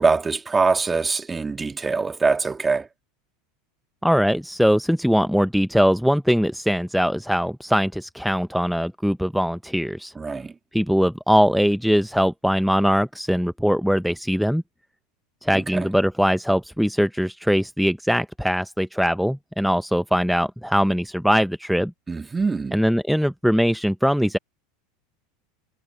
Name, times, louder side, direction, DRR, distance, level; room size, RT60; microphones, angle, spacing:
voice 1, 0.0-2.9 10.2-10.5 15.5-15.9 22.1-22.8, right 4 dB, 20° right, 2.5 m, -23 dB
voice 2, 4.0-10.1 10.7-14.6 15.4-21.9 22.7-24.4, equal, ahead, 0.9 m, -21 dB
figure-of-eight pair, 80°, 0 cm